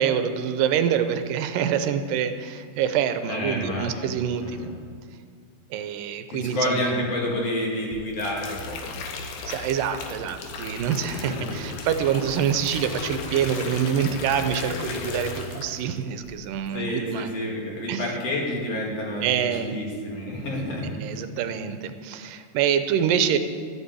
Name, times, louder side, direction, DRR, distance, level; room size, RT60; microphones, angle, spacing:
voice 1, 0.0-4.7 5.7-6.9 9.5-17.3 17.9-18.1 19.2-19.8 20.9-23.4, right 8 dB, 85° right, 9 dB, 2.4 m, -26 dB
voice 2, 3.3-4.1 4.4-4.7 6.3-8.8 11.1-11.5 16.7-19.3 19.6-20.9, left 1 dB, 50° left, -2 dB, 3.3 m, -29 dB
sound 1, 7.9-15.9 16.2-16.6, left 4 dB, 75° left, 2.7 m, -35 dB
13.0 x 8.2 x 8.3 m, 2.1 s
omnidirectional pair, 3.9 m